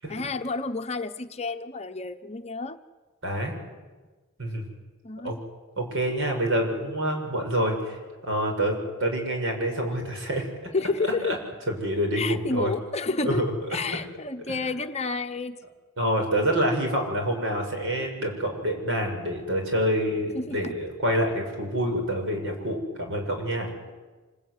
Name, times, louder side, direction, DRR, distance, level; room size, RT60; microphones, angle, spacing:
voice 1, 0.1-2.8 5.0-5.3 10.7-11.4 12.2-13.4 13.7-15.6 20.3-20.8, left 3 dB, 30° left, 7 dB, 0.9 m, -30 dB
voice 2, 3.2-3.6 4.4-4.6 5.2-5.4 5.8-10.4 11.2-11.4 11.7-12.7 13.2-13.8 16.0-23.9, equal, 60° right, 3 dB, 6.8 m, -27 dB
26.5 x 20.5 x 9.8 m, 1.3 s
head